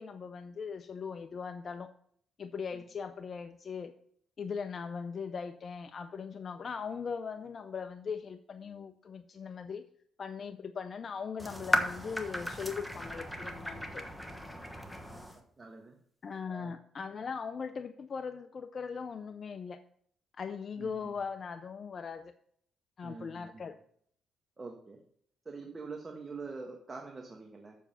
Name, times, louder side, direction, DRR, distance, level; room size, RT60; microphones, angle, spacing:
voice 1, 0.0-1.9 2.4-3.9 4.4-9.8 10.2-14.0 16.2-19.8 20.3-22.3 23.0-23.8, left 6 dB, 45° left, 9 dB, 0.5 m, -39 dB
sound 1, 11.4-15.4, equal, ahead, 1.2 m, -35 dB
voice 2, 15.6-16.0 16.5-16.7 20.8-21.1 23.0-23.6 24.6-25.0 25.4-27.8, right 4 dB, 30° right, 1 dB, 1.4 m, -45 dB
7.1 x 7.1 x 5.6 m, 0.64 s
cardioid pair, 90°, 0 cm